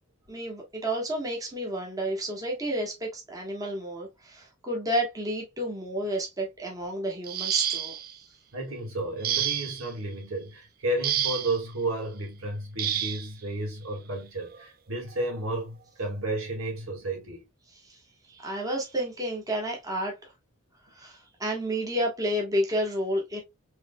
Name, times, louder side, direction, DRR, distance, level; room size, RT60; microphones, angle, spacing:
voice 1, 0.3-7.9 17.9-18.0 18.3-20.1 20.9-23.4, right 1 dB, 15° right, 1.3 m, -30 dB
sound 1, 7.2-8.1 9.2-9.9 11.0-11.6 12.8-13.3 14.5-14.6 15.1-15.3, right 10 dB, 45° right, 0.4 m, -29 dB
voice 2, 8.5-17.5, right 1 dB, 90° right, 2.0 m, -32 dB
4.8 x 3.2 x 2.2 m
head